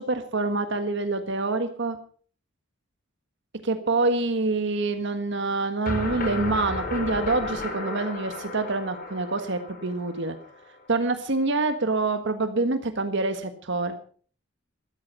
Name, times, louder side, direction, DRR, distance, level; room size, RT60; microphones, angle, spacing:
voice 1, 0.0-2.0 3.6-10.4 10.9-13.9, right 3 dB, 65° right, 8 dB, 1.5 m, -26 dB
sound 1, 5.9-10.8, left 2 dB, 45° left, 4.4 m, -33 dB
15.0 x 13.5 x 5.6 m, 0.44 s
head